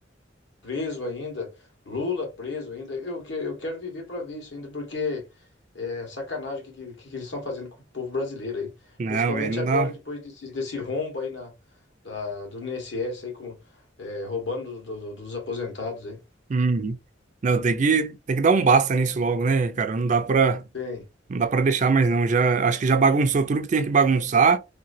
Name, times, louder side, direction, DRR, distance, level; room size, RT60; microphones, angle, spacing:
voice 1, 0.6-1.5 1.8-5.3 5.7-11.5 12.0-13.6 14.0-16.2 20.7-21.0, left 4 dB, 70° left, 1.4 m, -32 dB
voice 2, 9.0-9.9 16.5-17.0 17.4-20.6 21.3-24.6, right 4 dB, 40° right, 0.4 m, -21 dB
3.2 x 3.0 x 2.6 m
head